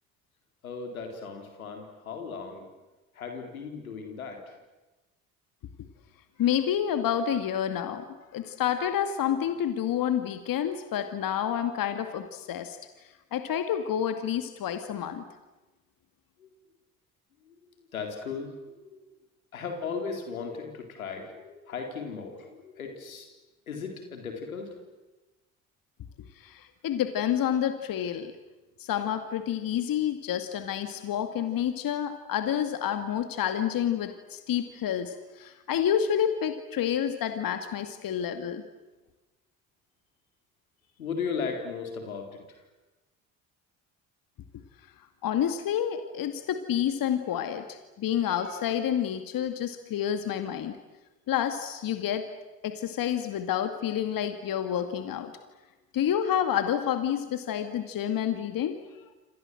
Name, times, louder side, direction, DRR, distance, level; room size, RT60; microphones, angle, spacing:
voice 1, 0.6-2.6 3.1-4.5 16.4-16.5 17.4-19.1 19.5-23.3 23.7-24.8 41.0-42.6, left 5 dB, 90° left, 4 dB, 4.1 m, -37 dB
voice 2, 6.4-8.1 8.3-12.8 13.3-15.2 26.4-28.3 28.8-38.6 45.2-50.8 51.3-52.3 52.6-55.3 55.9-58.8, left 9 dB, 55° left, 8 dB, 2.3 m, -29 dB
28.5 x 27.0 x 7.9 m, 1.1 s
hypercardioid pair, 55°, 41 cm